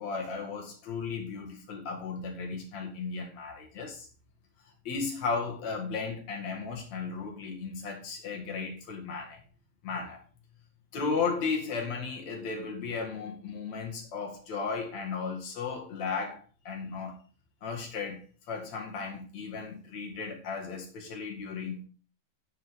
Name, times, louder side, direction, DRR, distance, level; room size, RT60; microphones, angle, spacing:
voice 1, 0.0-4.1 4.8-9.4 9.8-10.2 10.9-17.2 17.6-21.9, left 5 dB, 50° left, 2.5 m, -35 dB
11.5 x 8.0 x 3.7 m
omnidirectional pair, 5.3 m